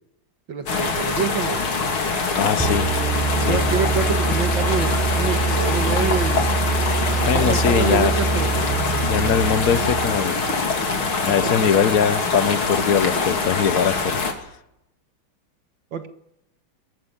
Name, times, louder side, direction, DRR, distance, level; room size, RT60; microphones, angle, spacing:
voice 1, 0.5-1.6 3.4-6.7 7.1-8.7 11.4-11.7 15.9-16.1, right 6 dB, 60° right, 9 dB, 2.2 m, -27 dB
sound 1, 0.7-14.3, left 4 dB, 70° left, 3.6 m, -24 dB
voice 2, 2.3-2.9 3.4-3.6 7.2-8.1 9.1-10.4 11.3-14.2, left 8 dB, 50° left, 15 dB, 1.2 m, -21 dB
sound 2, 2.6-10.3, right 4 dB, ahead, 3.5 m, -24 dB
23.5 x 13.0 x 9.9 m, 0.80 s
omnidirectional pair, 2.4 m